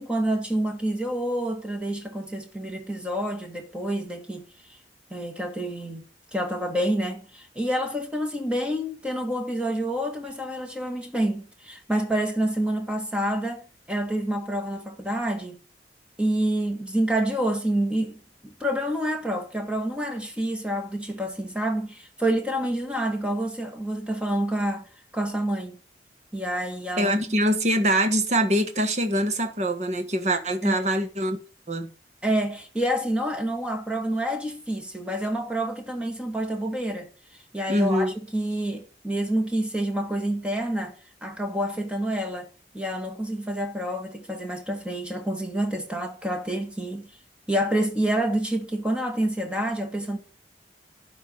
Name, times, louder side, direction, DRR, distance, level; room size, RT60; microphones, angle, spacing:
voice 1, 0.0-4.5 5.1-13.6 13.9-15.6 16.2-24.8 25.1-25.8 26.3-27.1 30.6-30.9 32.2-37.1 37.5-41.0 41.2-42.5 42.7-47.1 47.5-50.2, right 1 dB, 5° right, 2.0 m, -28 dB
voice 2, 27.0-31.4 31.7-31.9 37.7-38.1, right 1 dB, 40° right, 1.5 m, -24 dB
11.5 x 4.7 x 7.0 m
head